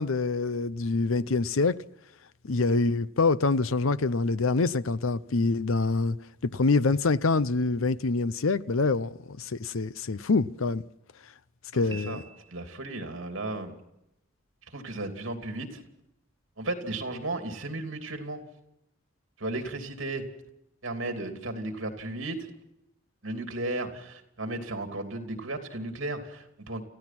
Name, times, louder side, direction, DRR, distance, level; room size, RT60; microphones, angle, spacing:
voice 1, 0.0-1.8 2.4-6.2 6.4-10.8 11.7-12.2, left 3 dB, 75° left, 0.7 m, -25 dB
voice 2, 11.7-12.2 12.5-13.7 14.7-15.8 16.6-18.4 19.4-20.2 20.8-22.5 23.2-26.8, right 2 dB, 65° right, 3.0 m, -34 dB
Piano, 11.9-13.0, right 4 dB, 25° right, 1.5 m, -47 dB
29.0 x 15.5 x 6.0 m
head